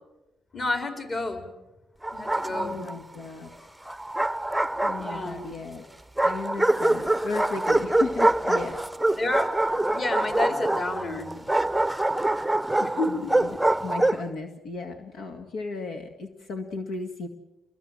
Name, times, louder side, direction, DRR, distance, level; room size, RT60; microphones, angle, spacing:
voice 1, 0.5-1.5 2.1-2.8 5.0-5.4 9.2-11.3 12.8-13.3, left 2 dB, 40° left, 6 dB, 4.8 m, -30 dB
Bark, 2.0-2.9 3.9-5.5 6.2-14.3, right 1 dB, 5° right, 0.8 m, -25 dB
voice 2, 2.5-3.5 4.8-5.9 6.2-8.8 12.8-17.3, left 3 dB, 75° left, 5 dB, 2.0 m, -35 dB
27.5 x 21.0 x 7.7 m, 1.0 s
cardioid pair, 90°, 0 cm